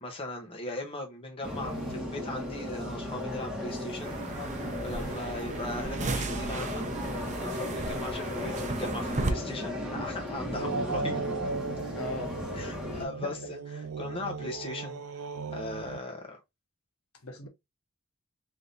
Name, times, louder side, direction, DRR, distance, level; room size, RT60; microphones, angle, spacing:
voice 1, 0.0-4.5 4.8-6.8 7.4-11.2 12.5-15.0 15.5-16.4, left 2 dB, 25° left, 0.9 m, -39 dB
sound 1, 1.4-13.1, left 1 dB, 5° right, 1.3 m, -35 dB
sound 2, 4.0-9.3, right 3 dB, 35° right, 0.7 m, -36 dB
sound 3, 10.5-16.0, right 4 dB, 75° right, 0.4 m, -36 dB
voice 2, 11.9-12.3 13.0-13.3 17.2-17.5, left 1 dB, 80° left, 1.2 m, -39 dB
3.5 x 2.7 x 3.9 m
head